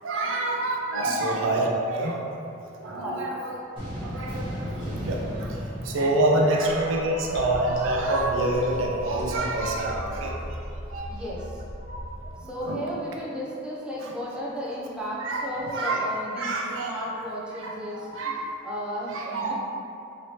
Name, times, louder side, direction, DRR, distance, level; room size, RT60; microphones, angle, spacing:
voice 1, 0.0-2.2 2.8-3.6 4.0-5.5 5.8-10.4 10.9-11.1 12.4-12.9 14.0-14.1 15.2-16.1 16.4-17.1 17.5-18.3 19.1-19.5, right 2 dB, 90° right, -1 dB, 0.5 m, -27 dB
sound 1, 3.8-7.2, equal, 25° right, 0.9 m, -34 dB
sound 2, 6.6-12.3, right 1 dB, 65° left, 0.7 m, -37 dB
voice 2, 11.1-11.5 12.5-16.5 16.8-18.3 18.6-19.5, equal, 5° right, -6 dB, 0.4 m, -34 dB
3.1 x 2.8 x 2.8 m, 2.7 s
head